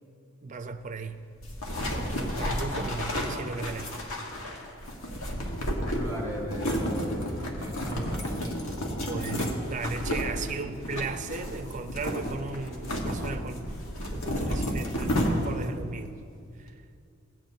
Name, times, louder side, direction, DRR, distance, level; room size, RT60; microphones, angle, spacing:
voice 1, 0.4-1.2 1.9-4.0 8.9-13.8 14.1-16.2 16.6-16.8, right 4 dB, 35° right, 0.5 m, -36 dB
sound 1, 1.4-15.8, equal, 75° left, 1.3 m, -31 dB
voice 2, 5.9-7.3 7.6-9.0, right 1 dB, 15° left, 2.7 m, -37 dB
17.0 x 8.9 x 2.7 m
head